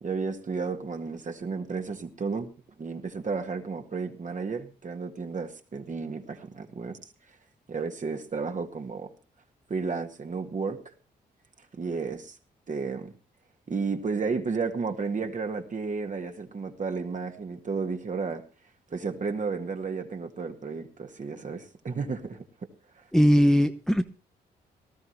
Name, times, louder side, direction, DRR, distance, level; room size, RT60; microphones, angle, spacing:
voice 1, 0.0-2.5 2.8-7.1 7.7-9.1 9.7-10.8 11.7-12.4 12.7-13.1 13.7-18.4 18.9-22.4, right 4 dB, 45° right, 1.9 m, -32 dB
voice 2, 23.1-24.0, equal, ahead, 0.9 m, -20 dB
19.0 x 12.5 x 3.3 m
supercardioid pair, 55°, 18 cm